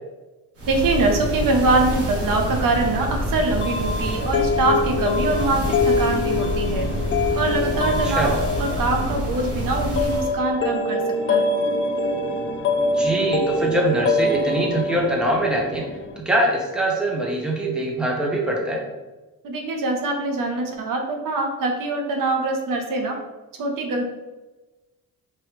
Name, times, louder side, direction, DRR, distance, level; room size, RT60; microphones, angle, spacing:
sound 1, 0.6-10.4, equal, 45° right, 1.0 m, -27 dB
voice 1, 0.7-6.9 7.4-11.6 19.4-23.2 23.6-24.0, right 2 dB, 70° right, 3 dB, 0.8 m, -23 dB
sound 2, 3.6-16.2, left 2 dB, 35° left, 0.4 m, -24 dB
voice 2, 13.0-15.9 16.2-18.8, right 1 dB, ahead, -1 dB, 0.7 m, -23 dB
4.7 x 3.0 x 3.0 m, 1.1 s
cardioid pair, 135°, 35 cm